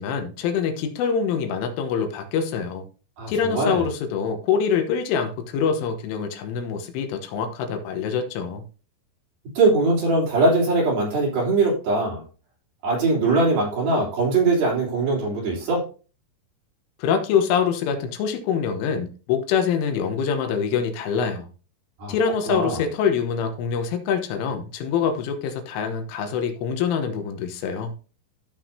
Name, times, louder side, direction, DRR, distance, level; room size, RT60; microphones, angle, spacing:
voice 1, 0.0-2.9 3.3-8.6 17.0-21.5 22.1-27.9, left 6 dB, 90° left, 3.6 m, -25 dB
voice 2, 3.2-3.8 9.6-12.2 12.8-15.8 22.0-22.1 22.5-22.8, right 3 dB, 50° right, 4.9 m, -21 dB
14.5 x 6.0 x 2.7 m
omnidirectional pair, 5.6 m